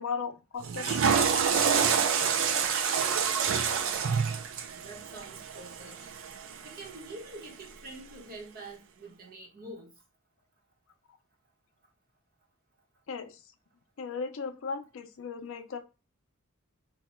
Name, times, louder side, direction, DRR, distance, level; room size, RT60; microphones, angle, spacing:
voice 1, 0.0-1.3 13.1-13.4 14.0-15.8, left 5 dB, 65° left, 0.5 m, -37 dB
Water / Toilet flush, 0.6-6.8, right 6 dB, 60° right, 0.4 m, -27 dB
voice 2, 4.7-6.0 6.6-9.9, right 2 dB, 45° right, 1.0 m, -46 dB
2.8 x 2.2 x 4.1 m
head